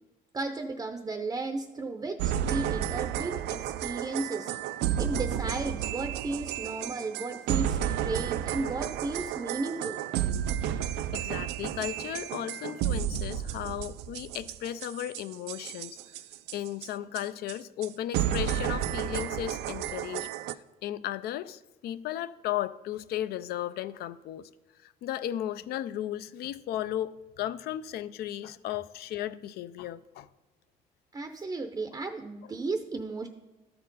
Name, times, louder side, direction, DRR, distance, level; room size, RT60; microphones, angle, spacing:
voice 1, 0.3-4.5 5.0-10.0 31.1-33.3, right 3 dB, 20° right, 6 dB, 0.6 m, -34 dB
sound 1, 2.2-16.9 17.1-17.2 17.5-17.6 17.8-17.9 18.1-20.5, right 10 dB, 80° right, 0.4 m, -32 dB
voice 2, 11.1-16.0 16.5-20.3 20.8-24.5 24.8-30.3, left 12 dB, 70° left, 15 dB, 0.4 m, -35 dB
12.5 x 4.4 x 4.0 m, 1.2 s
cardioid pair, 110°, 17 cm